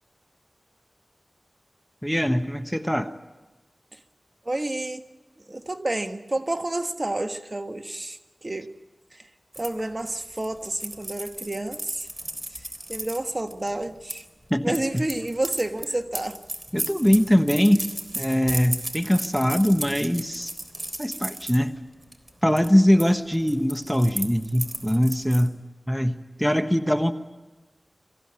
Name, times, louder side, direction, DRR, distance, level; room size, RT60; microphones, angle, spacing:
voice 1, 2.0-3.1 14.5-15.0 16.7-17.9 18.1-20.5 21.0-21.8 22.4-25.6 25.9-27.1, equal, 5° left, 8 dB, 1.2 m, -22 dB
voice 2, 4.4-5.0 5.5-8.7 9.1-9.3 9.6-12.1 12.5-12.6 12.9-14.2 14.6-16.4, right 2 dB, 40° right, 7 dB, 1.4 m, -30 dB
sound 1, 9.5-14.2 14.7-21.6 22.0-22.3 22.6-23.1 23.3-25.5, right 1 dB, 15° right, 3.7 m, -35 dB
26.0 x 15.5 x 9.7 m, 1.2 s
cardioid pair, 45°, 0 cm